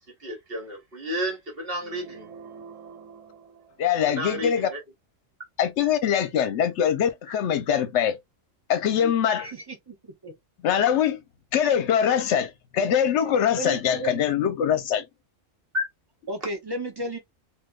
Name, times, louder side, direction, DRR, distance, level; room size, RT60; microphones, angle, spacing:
voice 1, 0.2-2.2 4.0-4.8 15.7-15.8, equal, 50° right, 1.4 m, -31 dB
sound 1, 1.7-4.4, right 6 dB, 80° right, 1.1 m, -46 dB
voice 2, 3.8-4.7 5.6-8.2 8.7-9.5 10.6-11.2 11.5-15.0, left 8 dB, 65° left, 0.9 m, -23 dB
voice 3, 9.0-10.3 13.2-14.1 16.3-17.2, right 1 dB, 25° right, 0.7 m, -34 dB
3.3 x 2.7 x 2.3 m
omnidirectional pair, 1.3 m